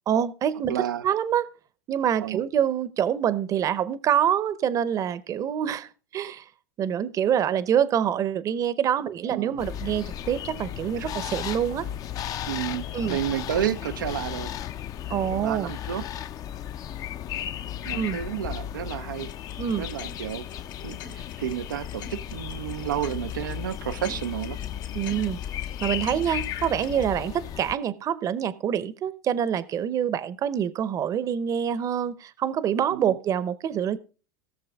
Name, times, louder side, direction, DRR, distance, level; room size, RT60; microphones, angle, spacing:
voice 1, 0.1-0.8 1.0-1.5 1.9-6.4 6.8-11.9 12.9-13.2 15.1-15.7 17.9-18.2 19.6-19.8 24.9-25.4 25.8-34.0, right 9 dB, 30° right, 0.8 m, -26 dB
voice 2, 0.7-1.0 2.2-2.4 9.2-9.6 11.0-11.1 12.5-14.5 15.1-16.1 17.8-19.3 19.8-20.5 20.8-24.6 32.9-33.1, right 10 dB, 85° right, 0.5 m, -31 dB
sound 1, 9.6-27.7, left 10 dB, 35° left, 0.6 m, -35 dB
sound 2, 19.1-27.1, left 8 dB, 75° left, 2.9 m, -45 dB
18.0 x 6.7 x 3.5 m
hypercardioid pair, 105°, 11 cm